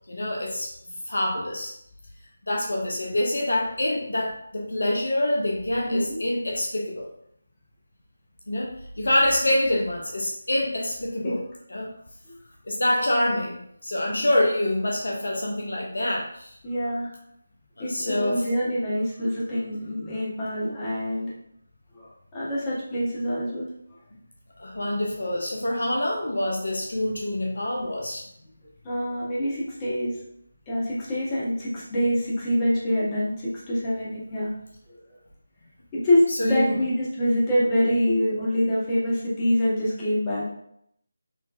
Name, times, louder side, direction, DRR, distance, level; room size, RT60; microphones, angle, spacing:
voice 1, 0.1-0.7 1.1-1.7 2.5-7.1 8.5-11.4 11.7-12.0 12.7-13.6 13.8-16.6 17.8-18.4 24.6-28.3 36.3-36.8, left 1 dB, 60° left, 0 dB, 0.6 m, -26 dB
voice 2, 5.8-6.2 11.2-11.3 12.3-12.4 16.6-17.1 17.8-21.3 21.9-23.7 28.8-30.2 30.7-34.5 34.9-35.0 35.9-40.5, equal, 20° left, -7 dB, 1.1 m, -25 dB
4.0 x 2.9 x 2.4 m, 0.73 s
figure-of-eight pair, 155°, 0 cm